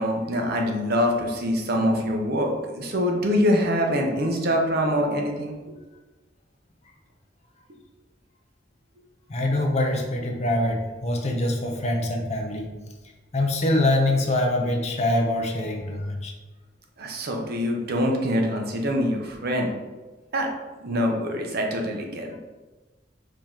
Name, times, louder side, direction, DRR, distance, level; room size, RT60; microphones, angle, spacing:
voice 1, 0.0-5.6 17.0-19.7 20.3-20.5 20.8-22.4, equal, 55° right, 2 dB, 0.7 m, -24 dB
voice 2, 9.3-12.7 13.3-16.3, left 1 dB, 35° left, 2 dB, 0.7 m, -24 dB
4.9 x 2.9 x 3.7 m, 1.2 s
head